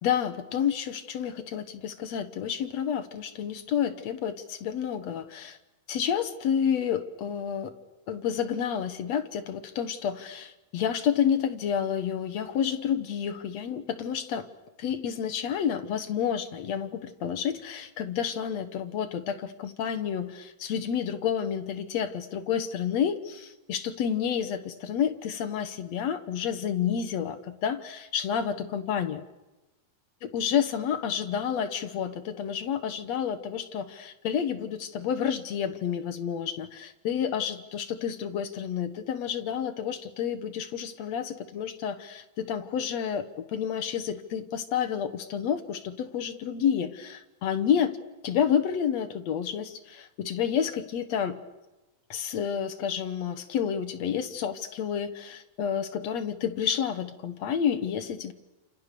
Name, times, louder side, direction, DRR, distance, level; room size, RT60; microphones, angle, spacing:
voice 1, 0.0-5.6 5.9-7.7 8.1-14.5 14.8-29.2 30.2-48.0 48.2-51.4 52.1-58.3, left 8 dB, 60° left, 9 dB, 2.0 m, -30 dB
29.0 x 27.5 x 6.9 m, 1.1 s
omnidirectional pair, 4.3 m